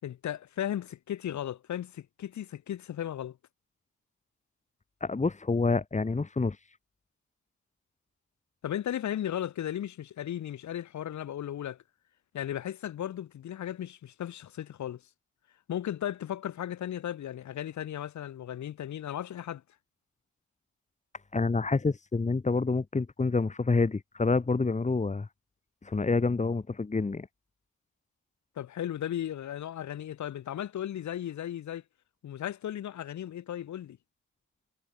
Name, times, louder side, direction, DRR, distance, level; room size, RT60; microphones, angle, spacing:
voice 1, 0.0-3.4 8.6-11.8 12.3-15.0 15.7-19.6 28.6-31.8 32.2-34.0, left 11 dB, 70° left, 5.4 m, -35 dB
voice 2, 5.0-6.6 21.3-25.3 25.8-27.3, left 3 dB, 25° left, 4.0 m, -27 dB
cardioid pair, 90°, 30 cm